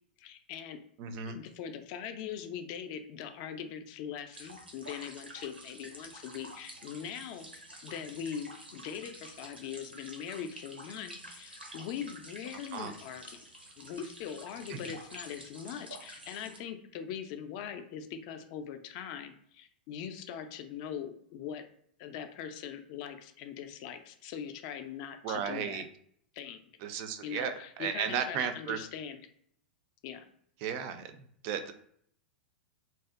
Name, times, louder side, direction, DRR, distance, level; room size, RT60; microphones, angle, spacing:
voice 1, 0.2-0.8 1.3-7.5 7.8-13.4 13.8-21.6 22.0-25.8 26.3-26.6 27.2-29.2 30.0-30.2, left 8 dB, 45° left, 7 dB, 0.3 m, -41 dB
voice 2, 1.0-1.4 12.7-12.9 25.2-25.8 26.8-28.8 30.6-31.2 31.4-31.7, right 7 dB, 40° right, 8 dB, 0.3 m, -34 dB
sound 1, 4.3-16.6, right 1 dB, 90° right, 0.6 m, -49 dB
2.6 x 2.1 x 2.3 m, 0.65 s
figure-of-eight pair, 100°, 5 cm